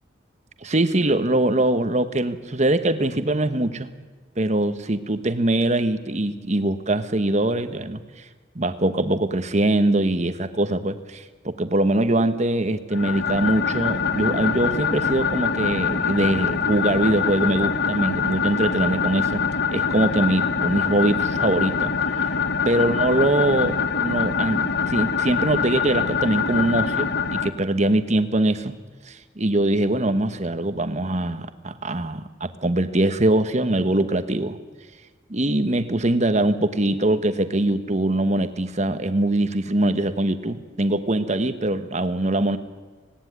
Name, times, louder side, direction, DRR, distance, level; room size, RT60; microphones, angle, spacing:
voice 1, 0.6-3.9 4.4-8.0 8.5-19.4 19.7-21.9 22.2-22.3 22.7-28.7 29.1-34.6 35.3-42.6, right 1 dB, 40° right, 10 dB, 1.2 m, -22 dB
sound 1, 12.9-27.5, left 6 dB, 60° left, 1.1 m, -24 dB
18.0 x 18.0 x 9.5 m, 1.4 s
head